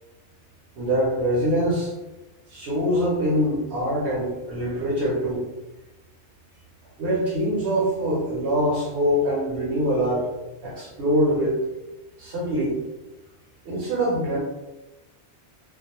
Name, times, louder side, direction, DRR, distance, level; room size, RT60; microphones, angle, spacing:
voice 1, 0.8-1.9 2.5-5.4 7.0-10.3 10.6-11.6 12.2-12.8 13.6-14.4, equal, 70° right, -6 dB, 0.9 m, -24 dB
2.3 x 2.1 x 2.9 m, 1.0 s
omnidirectional pair, 1.2 m